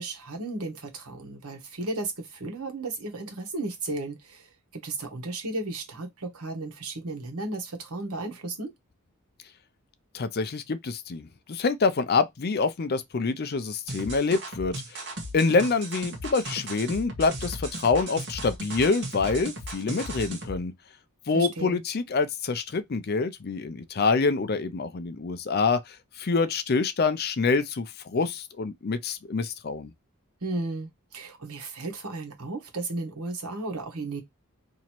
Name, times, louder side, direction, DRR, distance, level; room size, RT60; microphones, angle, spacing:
voice 1, 0.0-8.7 21.3-21.8 30.4-34.2, right 2 dB, 85° right, 1.2 m, -34 dB
voice 2, 10.1-15.0 15.3-20.7 21.3-29.9, left 4 dB, 45° left, 0.5 m, -26 dB
sound 1, 13.9-20.6, right 1 dB, 50° right, 1.1 m, -36 dB
3.0 x 2.7 x 4.3 m
head